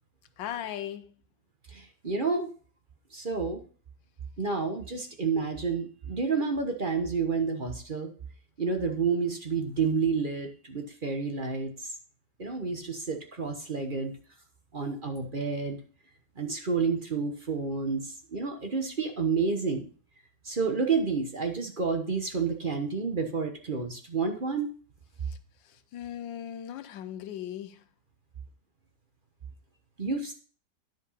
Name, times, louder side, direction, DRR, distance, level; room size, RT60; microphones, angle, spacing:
voice 1, 0.4-1.1 25.3-25.4 25.6-27.8, left 10 dB, 80° left, 1.5 m, -38 dB
voice 2, 1.7-2.5 3.1-3.6 4.4-8.1 8.6-11.9 12.4-14.1 14.7-15.8 16.4-19.8 20.4-24.7 30.0-30.3, right 5 dB, 35° right, 1.1 m, -30 dB
10.5 x 5.2 x 5.6 m
omnidirectional pair, 2.0 m